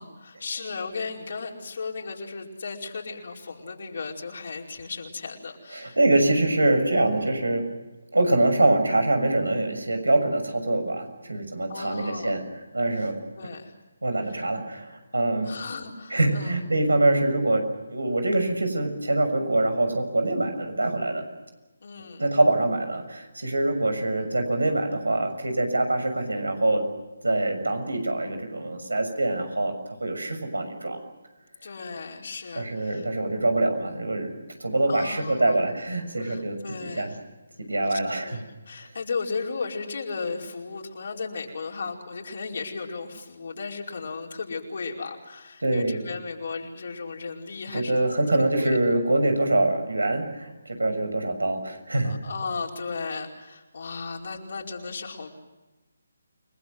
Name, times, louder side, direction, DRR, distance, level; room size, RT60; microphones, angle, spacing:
voice 1, 0.0-6.0 11.7-12.3 13.0-13.1 13.4-13.7 14.3-14.4 15.4-16.5 21.8-22.2 31.6-33.1 34.9-35.6 36.2-37.2 37.9-48.0 48.6-48.8 52.0-55.4, left 4 dB, 55° left, 0 dB, 5.0 m, -35 dB
voice 2, 5.7-7.6 8.1-13.2 14.0-15.5 16.1-21.2 22.2-26.8 27.2-29.7 30.0-31.0 32.5-34.3 34.6-37.1 37.7-38.4 45.6-46.0 47.7-52.2, right 2 dB, 85° right, 7 dB, 6.5 m, -24 dB
29.5 x 20.0 x 8.0 m, 1.1 s
figure-of-eight pair, 155°, 0 cm